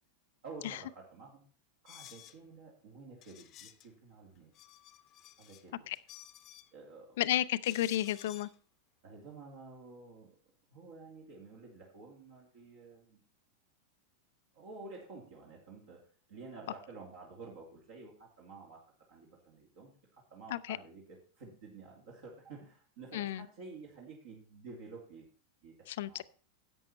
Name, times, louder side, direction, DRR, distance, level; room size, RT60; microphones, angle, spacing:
voice 1, 0.4-1.4 1.8-4.5 5.4-5.9 6.7-7.2 9.0-10.3 10.7-13.2 14.5-25.3 25.6-26.2, right 3 dB, 55° right, 2.7 m, -51 dB
sound 1, 1.9-2.4 3.2-3.9 4.4-5.6 5.9-6.7 7.6-8.6, left 11 dB, 35° left, 0.9 m, -53 dB
voice 2, 7.2-8.5 20.5-20.8 23.1-23.4 25.9-26.2, left 13 dB, 55° left, 0.5 m, -32 dB
11.0 x 7.8 x 4.3 m
figure-of-eight pair, 90°, 0 cm